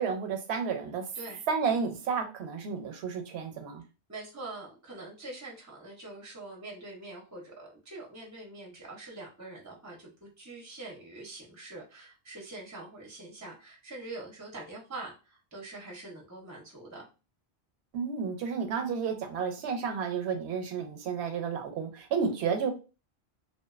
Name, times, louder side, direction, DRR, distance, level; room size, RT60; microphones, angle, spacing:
voice 1, 0.0-1.0 1.5-3.8 17.9-22.7, right 6 dB, 80° right, 0.8 m, -31 dB
voice 2, 1.1-1.5 4.1-17.1 22.3-22.4, right 2 dB, 25° right, 0.4 m, -44 dB
2.4 x 2.2 x 2.3 m
omnidirectional pair, 1.1 m